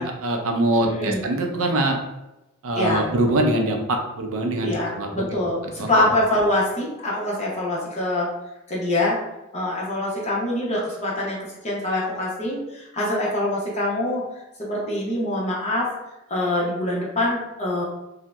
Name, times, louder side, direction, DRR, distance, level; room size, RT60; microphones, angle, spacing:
voice 1, 0.2-2.0 2.6-5.2 5.8-5.9, right 1 dB, 65° right, 3 dB, 0.5 m, -23 dB
voice 2, 0.8-1.2 2.8-3.0 4.6-8.3 8.7-9.2 9.5-11.4 11.6-14.2 14.6-15.9 16.3-17.8, left 1 dB, 30° left, -4 dB, 0.8 m, -24 dB
2.7 x 2.1 x 3.4 m, 0.97 s
head